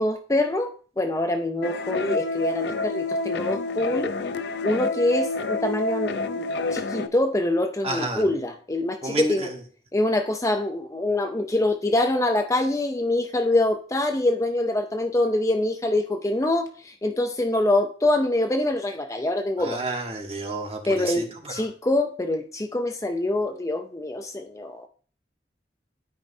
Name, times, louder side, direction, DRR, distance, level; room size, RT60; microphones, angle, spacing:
voice 1, 0.0-4.1 4.6-9.5 9.9-19.8 20.9-24.9, left 1 dB, 15° left, 6 dB, 0.5 m, -25 dB
sound 1, 1.6-7.1, left 3 dB, 65° left, 0.5 m, -28 dB
voice 2, 7.8-8.2 9.0-9.6 19.6-21.2 21.6-21.7, right 2 dB, 35° right, 2 dB, 1.3 m, -30 dB
12.5 x 5.1 x 2.6 m, 0.42 s
head